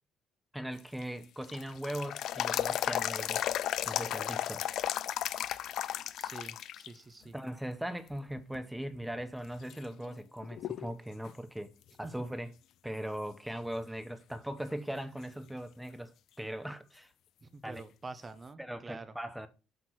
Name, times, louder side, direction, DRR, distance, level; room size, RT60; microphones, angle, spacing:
voice 1, 0.5-3.5 3.8-4.7 7.3-11.7 12.0-12.5 12.8-17.1 17.6-17.8 18.6-19.5, right 1 dB, 5° right, 0.8 m, -39 dB
sound 1, 0.8-6.9 7.3-7.4 8.1-8.6 9.1-9.2 9.7-10.9 11.2-11.3 14.7-14.8 17.8-17.9, left 11 dB, 65° left, 0.4 m, -34 dB
voice 2, 6.2-7.4 12.0-12.3 17.4-19.1, right 3 dB, 25° right, 1.0 m, -47 dB
7.9 x 4.3 x 4.4 m
cardioid pair, 90°, 0 cm